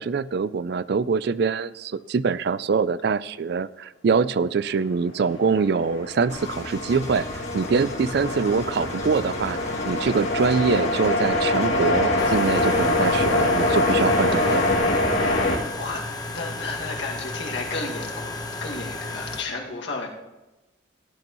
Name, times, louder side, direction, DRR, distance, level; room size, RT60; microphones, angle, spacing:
voice 1, 0.0-9.6 9.9-14.6, right 5 dB, 55° right, 17 dB, 0.4 m, -24 dB
sound 1, 5.4-15.6, left 2 dB, 85° left, 3.1 m, -24 dB
Engine, 6.3-14.7, left 3 dB, 35° left, 1.7 m, -36 dB
sound 2, 12.2-19.4, left 2 dB, 20° left, 0.9 m, -34 dB
voice 2, 15.8-20.1, left 3 dB, 65° left, 0 dB, 2.0 m, -33 dB
17.0 x 11.0 x 3.0 m, 1.1 s
head